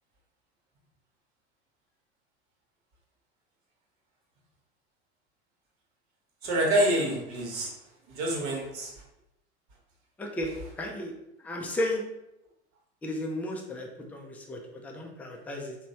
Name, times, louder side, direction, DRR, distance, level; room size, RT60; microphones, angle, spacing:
voice 1, 6.4-7.7 8.1-8.9, right 1 dB, 50° right, -1 dB, 1.1 m, -27 dB
voice 2, 10.2-11.1 11.4-12.0 13.0-15.8, left 1 dB, 5° left, 0 dB, 0.4 m, -34 dB
2.9 x 2.2 x 2.7 m, 0.86 s
hypercardioid pair, 80°, 34 cm